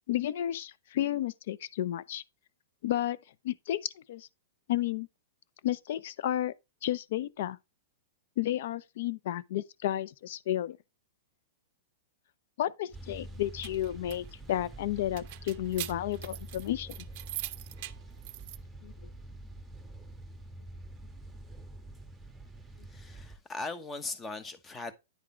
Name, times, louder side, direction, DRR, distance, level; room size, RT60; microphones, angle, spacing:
voice 1, 0.1-2.2 2.8-3.2 3.4-4.3 4.7-5.1 5.6-6.5 6.8-7.6 8.4-10.8 12.6-16.9 18.8-18.9, left 12 dB, 65° left, 0.4 m, -32 dB
sound 1, 12.9-23.4, right 1 dB, 5° right, 1.2 m, -46 dB
sound 2, 13.3-18.6, right 16 dB, 50° right, 0.5 m, -43 dB
voice 2, 22.8-24.9, left 3 dB, 15° left, 1.0 m, -39 dB
9.4 x 3.7 x 4.3 m
hypercardioid pair, 115°, 0 cm